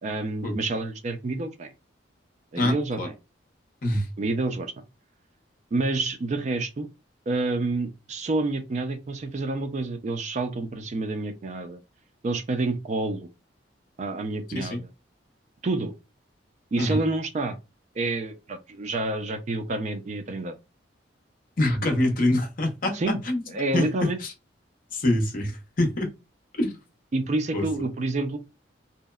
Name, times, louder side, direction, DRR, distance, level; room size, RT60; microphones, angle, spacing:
voice 1, 0.0-1.7 2.5-3.1 4.2-4.7 5.7-6.9 7.3-11.8 12.2-13.3 14.0-14.9 15.6-15.9 16.7-17.6 18.0-20.5 22.9-23.2 23.5-24.2 27.1-28.4, right 2 dB, 40° right, 0.3 m, -28 dB
voice 2, 2.6-3.1 3.8-4.1 14.5-14.8 16.8-17.0 21.6-23.4 23.7-23.9 24.2-24.3 24.9-26.1 26.6-26.8 27.5-27.6, left 1 dB, 50° left, 0.6 m, -25 dB
2.8 x 2.0 x 2.2 m
head